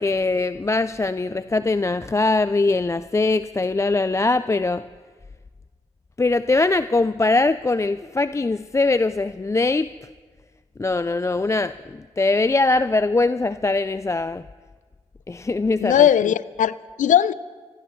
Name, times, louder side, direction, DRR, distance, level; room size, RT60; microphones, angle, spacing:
voice 1, 0.0-4.8 6.2-9.9 10.8-14.5 15.3-16.1, left 3 dB, 20° left, 14 dB, 0.4 m, -22 dB
voice 2, 15.8-17.3, left 10 dB, 75° left, 18 dB, 0.5 m, -18 dB
27.0 x 15.0 x 3.2 m, 1.4 s
supercardioid pair, 40°, 13 cm